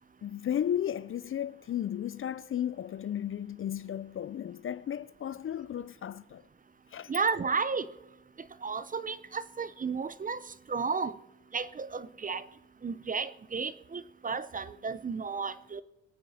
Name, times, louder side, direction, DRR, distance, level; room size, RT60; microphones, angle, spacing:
voice 1, 0.2-6.4 6.9-7.1, left 10 dB, 45° left, 0.5 m, -34 dB
voice 2, 7.1-7.9 8.6-10.4 10.7-11.2 11.5-12.4 12.8-15.8, right 5 dB, 25° right, 0.7 m, -33 dB
22.0 x 9.2 x 4.3 m
cardioid pair, 90°, 30 cm